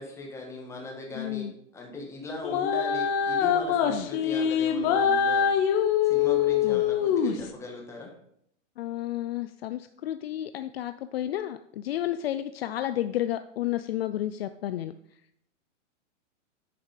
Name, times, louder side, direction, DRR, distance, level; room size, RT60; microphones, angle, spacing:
voice 1, 0.0-5.5 6.0-8.1, left 2 dB, 5° left, 0 dB, 1.5 m, -39 dB
voice 2, 1.1-1.5 3.9-4.1 6.6-6.8 8.8-14.9, left 13 dB, 55° left, 11 dB, 0.5 m, -31 dB
sound 1, 2.4-7.5, left 8 dB, 30° left, 0.8 m, -24 dB
10.5 x 5.5 x 4.9 m, 0.72 s
hypercardioid pair, 155°, 38 cm